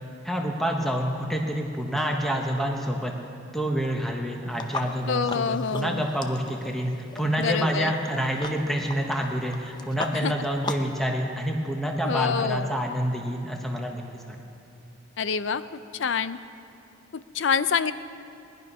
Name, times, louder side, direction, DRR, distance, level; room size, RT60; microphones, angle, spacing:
voice 1, 0.2-3.1 3.5-14.4, equal, ahead, 0 dB, 1.0 m, -28 dB
sound 1, 4.5-11.0, left 3 dB, 20° left, 0.6 m, -38 dB
voice 2, 5.1-6.1 7.4-7.9 10.2-10.3 12.0-12.7 15.2-15.6 15.9-16.4 17.1-17.9, left 6 dB, 65° left, 14 dB, 0.5 m, -26 dB
20.0 x 11.0 x 5.5 m, 2.6 s
head